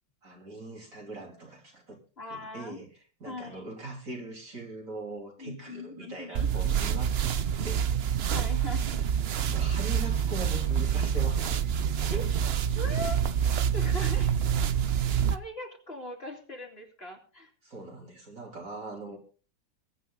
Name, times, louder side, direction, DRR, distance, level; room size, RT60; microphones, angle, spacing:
voice 1, 0.2-2.0 2.2-2.9 3.2-7.3 7.6-7.9 9.5-11.6 12.0-12.3 17.6-19.2, right 2 dB, 45° right, 1 dB, 3.7 m, -41 dB
voice 2, 2.2-2.8 3.2-3.6 5.4-7.0 8.3-9.0 12.1-12.4 12.7-13.2 13.7-14.3 15.3-17.5, left 1 dB, 35° left, 2 dB, 3.2 m, -40 dB
sound 1, 6.3-15.4, right 8 dB, 65° right, 0.6 m, -27 dB
22.0 x 8.8 x 3.8 m, 0.39 s
omnidirectional pair, 1.9 m